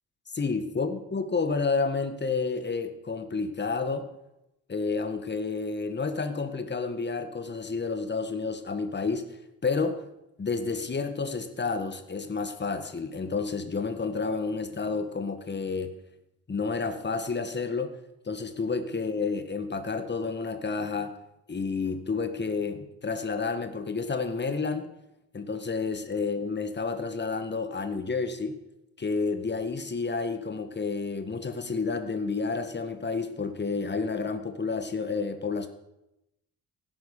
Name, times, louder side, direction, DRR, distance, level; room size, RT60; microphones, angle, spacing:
voice 1, 0.3-4.2 4.7-10.0 10.4-15.9 16.5-17.9 18.2-21.1 21.5-24.9 25.3-28.5 29.0-35.7, left 4 dB, 30° left, 9 dB, 1.8 m, -30 dB
16.5 x 9.7 x 6.7 m, 0.89 s
cardioid pair, 105°, 33 cm